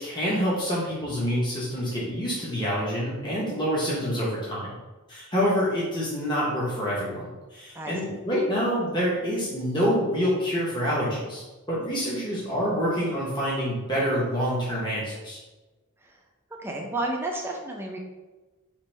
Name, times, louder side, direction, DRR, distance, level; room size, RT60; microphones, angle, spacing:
voice 1, 0.0-4.8 5.1-11.4 11.7-15.4, equal, 20° left, -6 dB, 0.7 m, -27 dB
voice 2, 16.6-18.0, right 2 dB, 10° right, 0 dB, 0.4 m, -31 dB
4.5 x 2.5 x 3.1 m, 1.2 s
head